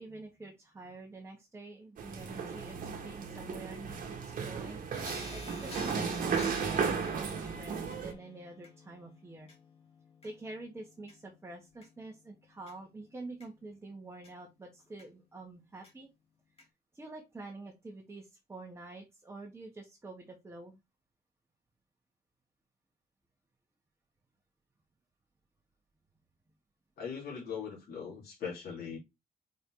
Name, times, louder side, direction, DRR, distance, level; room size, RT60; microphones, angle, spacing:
voice 1, 0.0-9.5 10.2-16.1 16.9-20.8, right 2 dB, 15° right, -1 dB, 1.3 m, -47 dB
sound 1, 2.0-8.1, right 6 dB, 55° right, 1.4 m, -35 dB
sound 2, 4.9-14.3 15.0-15.1 15.8-15.9 16.6-16.7, left 3 dB, 35° left, 2.5 m, -51 dB
voice 2, 27.0-29.0, left 6 dB, 70° left, -4 dB, 2.9 m, -40 dB
5.3 x 4.1 x 4.7 m, 0.22 s
wide cardioid pair, 180°, 17 cm